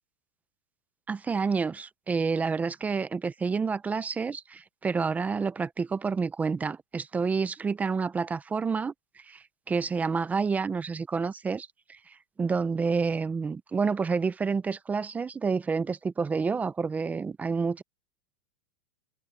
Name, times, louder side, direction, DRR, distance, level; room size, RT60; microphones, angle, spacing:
voice 1, 1.1-8.9 9.3-12.0 12.4-17.8, right 5 dB, 10° right, 0.4 m, -29 dB
open air
supercardioid pair, 165°, 20 cm